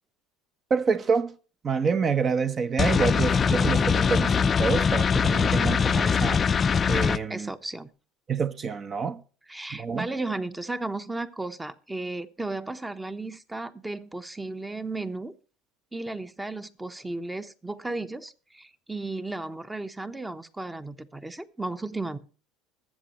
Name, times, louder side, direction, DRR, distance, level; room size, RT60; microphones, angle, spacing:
voice 1, 0.7-1.3 1.6-6.4 6.9-7.5 8.3-9.2 9.7-10.1, right 5 dB, 35° right, 1.0 m, -27 dB
sound 1, 2.8-7.2, left 6 dB, 30° left, 0.6 m, -22 dB
voice 2, 7.3-7.9 9.5-15.3 15.9-22.2, right 2 dB, 10° right, 1.0 m, -34 dB
21.0 x 7.7 x 3.1 m
hypercardioid pair, 75°, 0 cm